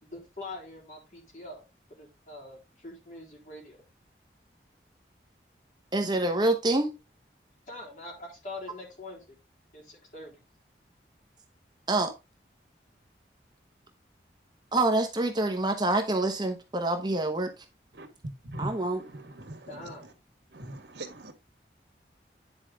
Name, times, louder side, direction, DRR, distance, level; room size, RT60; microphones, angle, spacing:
voice 1, 0.0-1.7 2.0-3.8 7.7-9.4 9.7-10.4 19.7-20.0, left 2 dB, 45° left, 3.7 m, -43 dB
voice 2, 5.9-6.9 11.9-12.1 14.7-17.5 18.6-19.0, right 2 dB, 25° right, 1.0 m, -26 dB
voice 3, 18.4-20.1 20.5-21.3, right 1 dB, 85° right, 1.7 m, -41 dB
9.9 x 4.8 x 3.6 m
head